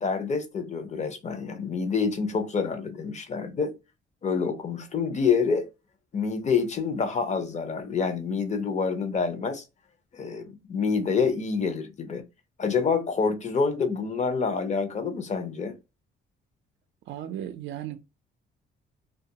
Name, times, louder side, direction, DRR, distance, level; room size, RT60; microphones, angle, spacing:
voice 1, 0.0-3.7 4.2-5.7 6.1-9.6 10.1-12.2 12.6-15.8, left 5 dB, 35° left, 0.6 m, -27 dB
voice 2, 17.1-18.0, right 11 dB, 70° right, 0.4 m, -35 dB
2.3 x 2.2 x 2.7 m
cardioid pair, 90°, 20 cm